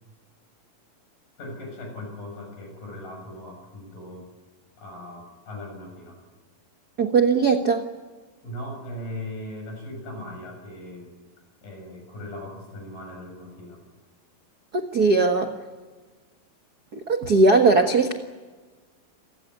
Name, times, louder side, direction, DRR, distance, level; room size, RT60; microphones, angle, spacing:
voice 1, 1.4-4.3 4.8-6.2 8.4-11.1 11.6-13.8, left 1 dB, 65° left, 2 dB, 8.5 m, -38 dB
voice 2, 7.0-7.9 14.7-15.5 16.9-18.1, right 3 dB, 85° right, 5 dB, 0.8 m, -19 dB
28.5 x 16.0 x 9.6 m, 1.3 s
omnidirectional pair, 4.3 m